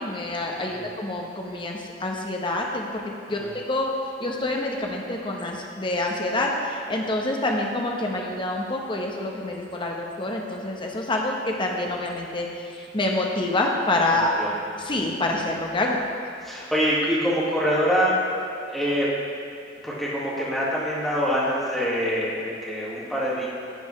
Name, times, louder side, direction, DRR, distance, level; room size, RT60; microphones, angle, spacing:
voice 1, 0.0-3.4 3.7-3.9 4.2-12.5 12.8-14.4 14.9-16.0, left 2 dB, 25° left, 0 dB, 0.9 m, -27 dB
voice 2, 14.1-14.5 14.9-15.0 16.4-18.2 18.7-19.1 19.8-23.5, equal, ahead, -8 dB, 1.8 m, -25 dB
11.0 x 7.1 x 3.2 m, 2.5 s
head